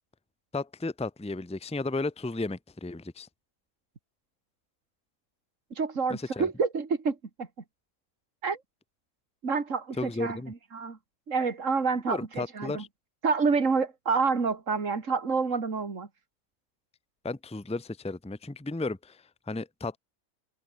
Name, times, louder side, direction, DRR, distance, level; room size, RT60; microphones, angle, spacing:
voice 1, 0.5-3.3 6.1-6.5 10.0-10.5 12.1-12.9 17.2-20.0, left 3 dB, 5° left, 0.9 m, -34 dB
voice 2, 5.8-7.5 8.4-8.6 9.4-10.4 10.7-11.0 11.3-12.8 13.2-16.1, right 5 dB, 55° right, 2.9 m, -28 dB
omnidirectional pair, 1.5 m